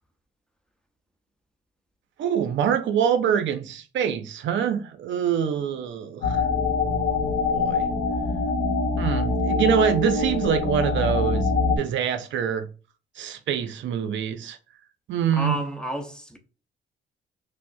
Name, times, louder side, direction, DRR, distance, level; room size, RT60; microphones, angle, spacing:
voice 1, 2.2-6.4 7.5-7.9 9.0-11.5 11.8-12.7 13.2-14.6 15.1-15.6, right 8 dB, 70° right, 0.5 m, -25 dB
sound 1, 6.2-11.8, left 3 dB, 90° left, 0.9 m, -24 dB
voice 2, 15.4-16.4, equal, 5° left, 0.7 m, -30 dB
5.8 x 2.1 x 2.6 m
cardioid pair, 90°, 20 cm